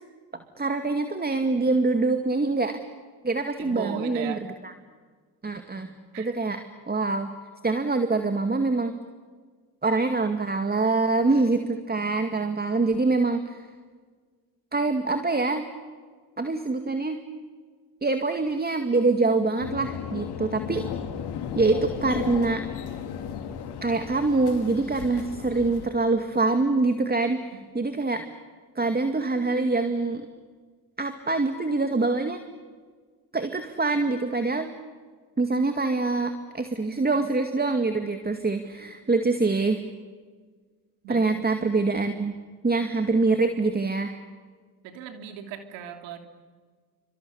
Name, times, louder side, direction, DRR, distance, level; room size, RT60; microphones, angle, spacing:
voice 1, 0.3-2.8 3.2-4.7 5.4-6.6 6.9-7.3 7.6-8.9 9.8-13.7 14.7-15.6 16.4-17.2 18.0-20.9 21.6-22.6 23.8-28.2 28.8-30.3 31.0-32.4 33.3-34.7 35.4-39.8 41.1-42.3 42.6-44.1, right 3 dB, 20° right, 7 dB, 2.2 m, -25 dB
voice 2, 3.6-4.4 6.1-6.3 41.0-41.3 44.8-46.2, right 8 dB, 80° right, 6 dB, 3.2 m, -37 dB
sound 1, 19.6-25.9, left 8 dB, 65° left, 3.1 m, -35 dB
29.5 x 25.5 x 7.1 m, 1.5 s
supercardioid pair, 65°, 43 cm